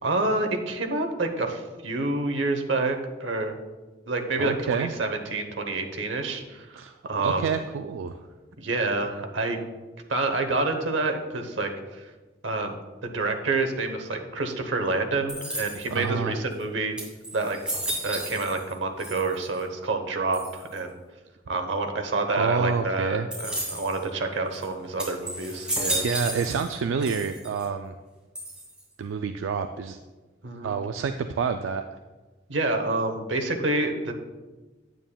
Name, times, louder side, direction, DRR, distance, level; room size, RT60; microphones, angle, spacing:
voice 1, 0.0-3.5 4.1-7.4 8.6-9.6 10.1-12.0 12.4-12.8 13.0-17.0 17.3-17.6 18.0-21.0 21.5-26.0 30.4-30.7 32.5-34.1, right 2 dB, 70° right, 5 dB, 0.9 m, -28 dB
voice 2, 4.4-4.9 6.8-8.3 15.9-16.4 22.3-23.3 25.9-27.9 29.0-30.0 30.6-32.0, right 6 dB, 85° right, 7 dB, 0.3 m, -28 dB
sound 1, 15.3-16.0 16.6-16.7 17.0-18.7 19.0-19.6 20.3-20.8 23.3-24.0 24.5-24.6 25.0-26.7 27.0-27.6 28.3-28.9, right 1 dB, 5° right, 2.5 m, -33 dB
9.2 x 8.8 x 2.2 m, 1.2 s
head